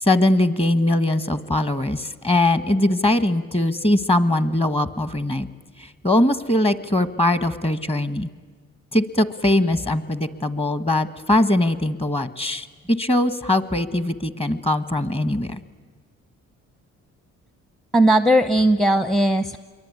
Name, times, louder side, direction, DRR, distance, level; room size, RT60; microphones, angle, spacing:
voice 1, 0.0-5.5 5.8-8.3 8.9-15.6, left 1 dB, 20° left, 13 dB, 1.4 m, -21 dB
voice 2, 17.9-19.6, right 1 dB, ahead, 11 dB, 0.8 m, -17 dB
27.0 x 23.0 x 9.7 m, 1.4 s
cardioid pair, 90°, 30 cm